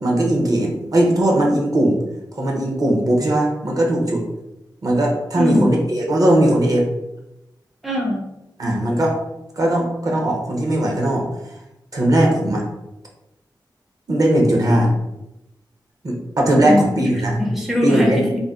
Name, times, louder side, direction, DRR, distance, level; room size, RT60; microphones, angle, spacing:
voice 1, 0.0-2.0 2.4-4.2 4.8-6.9 8.6-9.2 9.6-11.3 11.9-12.6 14.1-14.9 16.0-17.4 17.8-18.3, right 1 dB, 50° right, 0 dB, 0.6 m, -18 dB
voice 2, 5.3-5.7 7.8-8.2 16.6-16.9 17.4-18.4, left 1 dB, ahead, -1 dB, 0.4 m, -21 dB
2.5 x 2.1 x 3.5 m, 0.91 s
wide cardioid pair, 130°, 8 cm